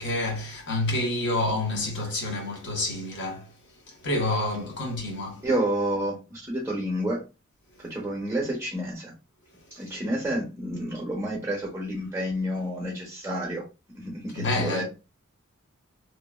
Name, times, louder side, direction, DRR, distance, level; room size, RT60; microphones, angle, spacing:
voice 1, 0.0-5.5 14.3-14.8, left 1 dB, 55° left, 0.9 m, -28 dB
voice 2, 5.4-7.2 7.8-9.1 9.7-13.6 13.9-14.8, right 1 dB, 10° right, 0.6 m, -29 dB
2.9 x 2.2 x 2.2 m
head